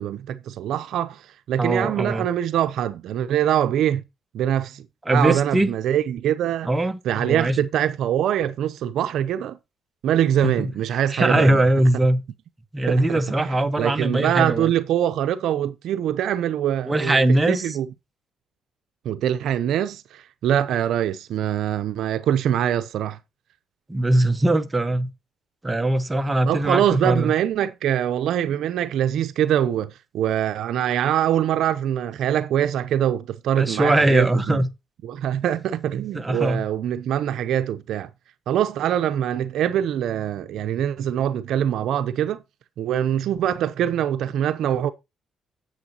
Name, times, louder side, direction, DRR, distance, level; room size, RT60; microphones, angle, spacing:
voice 1, 0.0-4.0 4.3-6.7 7.0-9.6 10.0-11.6 12.9-17.9 19.0-23.2 26.5-34.6 35.0-38.1 38.5-42.4 42.8-44.9, right 10 dB, 80° right, 0.6 m, -23 dB
voice 2, 1.6-2.3 5.1-5.7 6.6-7.6 10.4-10.7 11.1-12.2 12.7-14.7 16.9-17.8 23.9-25.1 25.6-27.3 33.6-34.7 36.1-36.6, right 1 dB, 15° right, 1.2 m, -21 dB
10.5 x 7.9 x 2.9 m
cardioid pair, 90°, 0 cm